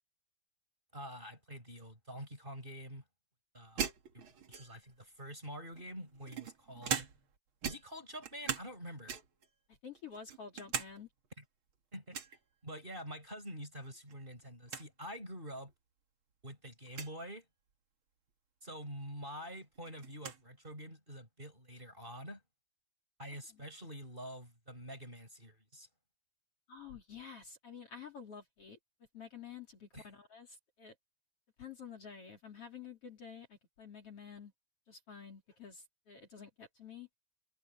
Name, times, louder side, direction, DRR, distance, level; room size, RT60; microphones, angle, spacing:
voice 1, 0.9-3.0 3.5-3.9 4.1-7.1 7.7-9.2 11.4-11.5 11.9-12.2 12.6-15.7 16.4-17.5 18.6-22.4 23.2-25.9 29.9-30.1, equal, 15° right, 5.3 m, -47 dB
sound 1, 3.8-4.9 5.8-7.4 7.6-8.8 9.1-9.5 9.9-10.9 11.2-11.3 12.1-12.4 13.8-14.2 14.4-14.5 14.7-14.9 15.7-15.8 16.9-17.1 18.8-18.9 19.3-20.4, right 7 dB, 45° right, 2.1 m, -40 dB
voice 2, 9.7-11.1 23.5-23.6 26.7-28.8 29.1-31.0 31.6-34.5 34.9-37.1, left 7 dB, 45° left, 4.0 m, -50 dB
omnidirectional pair, 3.9 m